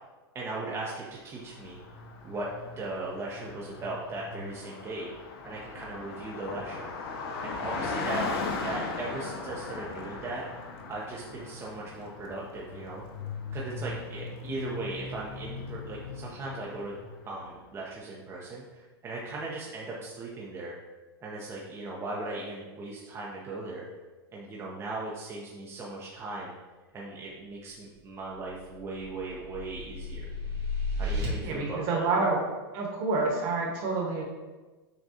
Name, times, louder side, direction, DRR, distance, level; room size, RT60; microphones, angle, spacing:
voice 1, 0.3-1.8 2.2-5.1 5.4-6.9 7.4-10.4 10.9-13.0 13.5-16.9 17.3-20.8 21.2-23.9 24.3-26.5 26.9-30.3 31.0-32.1, right 2 dB, 20° right, -4 dB, 0.6 m, -38 dB
Car passing by, 1.4-17.4, left 4 dB, 65° left, 0.6 m, -38 dB
sound 1, 28.8-31.3, left 2 dB, 85° right, 1.4 m, -34 dB
voice 2, 31.4-32.4 32.7-34.2, right 3 dB, 50° right, -1 dB, 1.2 m, -28 dB
6.1 x 2.3 x 2.7 m, 1.2 s
hypercardioid pair, 125°, 14 cm